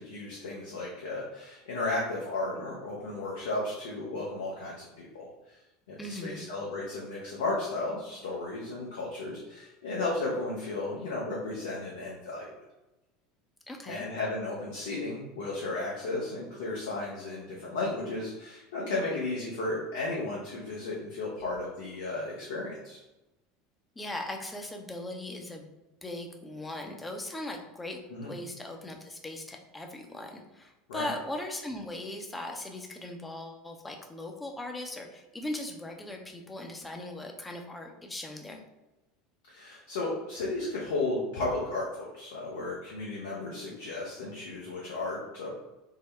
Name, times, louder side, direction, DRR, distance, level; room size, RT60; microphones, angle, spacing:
voice 1, 0.0-5.6 5.9-12.5 13.9-23.0 28.1-28.3 30.9-31.1 39.5-45.5, left 2 dB, 70° left, -5 dB, 0.7 m, -34 dB
voice 2, 6.0-6.5 13.7-14.0 24.0-25.7 26.0-38.6, left 1 dB, 15° left, 3 dB, 0.6 m, -39 dB
3.6 x 2.1 x 3.2 m, 1.0 s
figure-of-eight pair, 75°, 0 cm